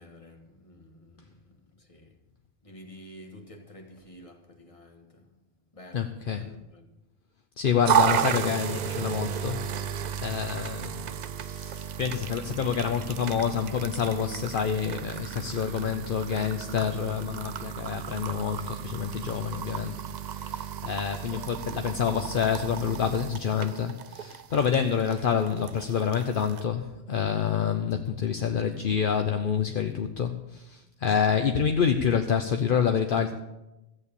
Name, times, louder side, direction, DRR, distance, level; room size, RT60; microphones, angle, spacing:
voice 1, 0.0-2.2 2.6-5.3 5.7-6.9 21.3-21.5, left 1 dB, 35° left, 1.6 m, -50 dB
voice 2, 5.9-6.5 7.6-9.6 10.2-33.3, left 7 dB, 60° left, 0.9 m, -28 dB
sound 1, 7.8-26.6, right 8 dB, 55° right, 0.6 m, -33 dB
14.0 x 8.8 x 6.9 m
omnidirectional pair, 1.0 m